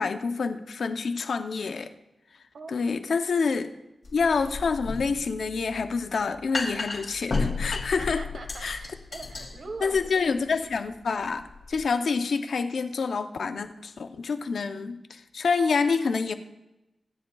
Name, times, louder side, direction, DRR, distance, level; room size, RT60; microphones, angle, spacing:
voice 1, 0.0-1.9 2.7-3.7 4.1-8.2 8.6-8.8 9.8-16.3, left 5 dB, 85° left, 8 dB, 0.6 m, -27 dB
sound 1, 4.0-11.8, left 3 dB, 60° left, 2.9 m, -34 dB
voice 2, 8.0-10.5, right 3 dB, 80° right, 4 dB, 1.5 m, -42 dB
25.0 x 10.5 x 2.3 m, 0.95 s
wide cardioid pair, 125°, 0 cm